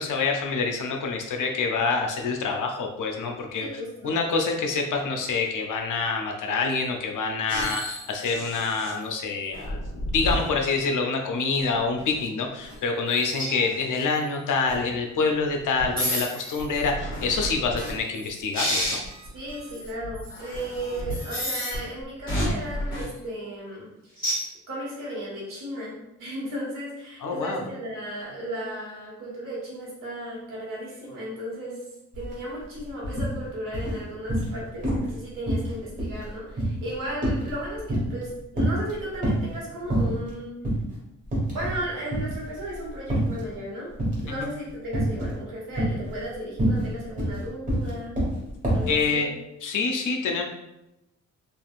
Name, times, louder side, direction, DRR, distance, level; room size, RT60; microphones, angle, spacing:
voice 1, 0.0-3.7 4.0-9.8 10.1-19.0 27.2-27.6 44.4-44.5 48.9-49.3 49.6-50.4, left 4 dB, 75° left, 3 dB, 0.6 m, -26 dB
voice 2, 3.6-4.2 19.3-23.9 24.7-31.8 32.1-40.6 41.5-43.9 44.2-48.2 48.7-49.3, right 1 dB, 85° right, -5 dB, 1.4 m, -35 dB
sound 1, 7.5-8.9 9.5-10.6 11.6-12.2 12.6-12.8 13.1-14.0 14.7-14.9 15.8-21.8 22.3-23.0 24.2-24.4, equal, 15° left, 1.5 m, -31 dB
sound 2, 32.1-32.3 32.6-33.3 33.7-34.6 34.8-35.2 35.5-38.3 38.5-39.5 39.9-40.3 40.6-40.8 41.2-41.8 42.1-43.5 44.0-44.4 44.9-45.4 45.7-48.9, right 1 dB, 25° right, 1.2 m, -26 dB
3.4 x 2.5 x 2.4 m, 0.91 s
wide cardioid pair, 120°, 32 cm